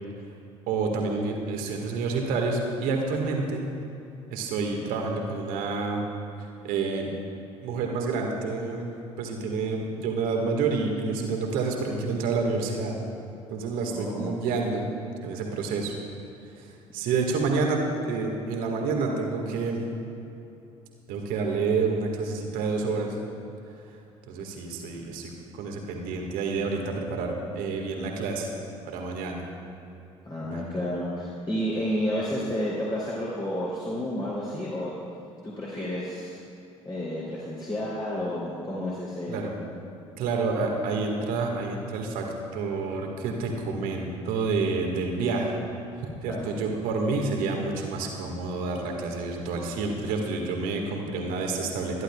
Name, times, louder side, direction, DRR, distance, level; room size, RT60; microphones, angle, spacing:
voice 1, 0.7-3.7 4.3-6.0 6.6-7.1 7.6-8.9 9.2-13.0 13.5-14.9 15.2-15.9 16.5-19.8 21.1-23.2 24.3-28.5 28.8-29.4 30.4-30.6 39.3-39.5 40.2-42.3 42.5-45.5 46.2-52.0, right 4 dB, 65° right, 1 dB, 1.8 m, -28 dB
voice 2, 13.9-14.3 30.2-34.9 35.4-36.4 36.8-39.4 46.3-46.5, equal, 30° left, -8 dB, 3.2 m, -31 dB
23.5 x 11.5 x 2.4 m, 2.8 s
figure-of-eight pair, 50°, 16 cm